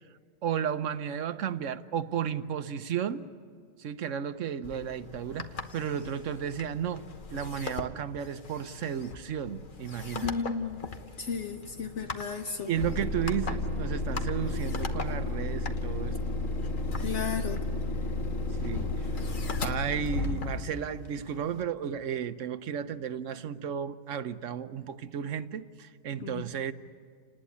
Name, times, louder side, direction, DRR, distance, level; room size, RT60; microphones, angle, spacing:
voice 1, 0.4-3.3 3.8-10.3 12.7-16.2 18.6-19.3 19.6-26.7, right 8 dB, 70° right, 11 dB, 1.1 m, -33 dB
sound 1, 4.6-21.6, left 4 dB, 40° left, 1.2 m, -43 dB
voice 2, 10.2-10.8 11.2-12.7 17.0-17.6 26.2-26.4, left 5 dB, 65° left, 7 dB, 1.2 m, -33 dB
sound 2, 12.8-20.8, left 2 dB, 80° left, 2.0 m, -32 dB
29.0 x 19.5 x 8.5 m, 2.1 s
omnidirectional pair, 1.3 m